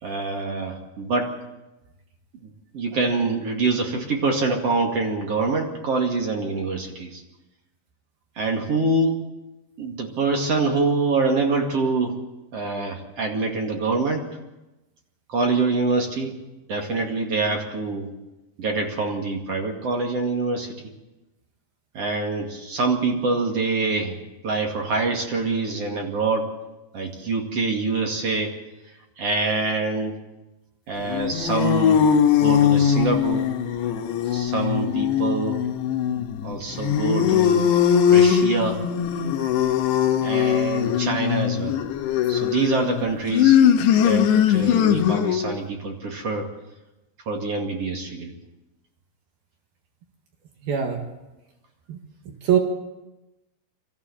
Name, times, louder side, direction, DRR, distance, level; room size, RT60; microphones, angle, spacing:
voice 1, 0.0-1.3 2.7-7.2 8.4-9.2 9.8-12.2 12.5-14.3 15.3-16.3 16.7-18.1 18.6-20.8 21.9-24.2 24.4-26.5 26.9-28.6 29.2-30.1 30.9-32.1 32.3-33.5 34.3-35.6 36.4-37.7 38.0-38.8 40.2-41.8 42.3-43.6 44.0-46.5 47.3-48.4, right 3 dB, 45° right, 1 dB, 2.7 m, -25 dB
sound 1, 31.0-45.5, left 9 dB, 85° left, 3.5 m, -20 dB
voice 2, 50.6-51.0 51.9-52.0 52.4-52.6, right 8 dB, 65° right, 3 dB, 3.5 m, -21 dB
24.5 x 15.0 x 8.6 m, 1.0 s
omnidirectional pair, 4.9 m